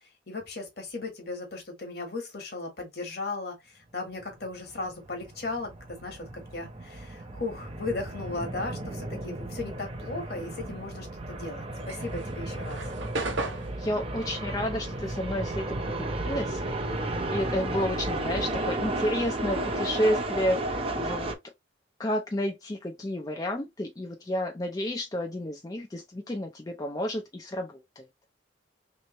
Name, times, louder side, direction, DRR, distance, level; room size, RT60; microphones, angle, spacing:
voice 1, 0.3-12.8, left 3 dB, 55° left, 1.3 m, -36 dB
sound 1, 4.2-21.3, right 2 dB, 30° right, 0.6 m, -33 dB
sound 2, 11.7-16.4 16.7-18.7, right 2 dB, 85° right, 0.9 m, -37 dB
voice 2, 13.5-15.8 16.2-16.6 17.3-21.4 22.0-28.0, equal, 20° left, 0.4 m, -31 dB
3.3 x 3.0 x 2.9 m
head